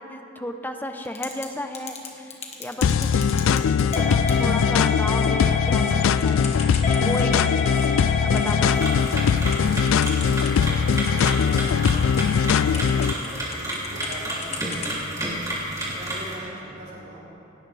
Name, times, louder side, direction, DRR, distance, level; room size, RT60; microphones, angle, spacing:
voice 1, 0.0-6.5 7.0-7.4 8.2-8.9, left 1 dB, 10° left, 6 dB, 0.7 m, -34 dB
Typing / Telephone, 1.0-1.5 1.7-10.8 11.1-14.2 14.4-15.0, left 4 dB, 30° left, 1.4 m, -29 dB
sound 1, 2.8-13.1, left 6 dB, 70° left, 0.3 m, -21 dB
voice 2, 7.2-7.6 8.4-8.6 9.3-17.2, right 1 dB, 50° right, -7 dB, 4.2 m, -41 dB
sound 2, 8.6-16.3, right 1 dB, 15° right, 3.0 m, -31 dB
18.5 x 17.5 x 3.4 m, 3.0 s
head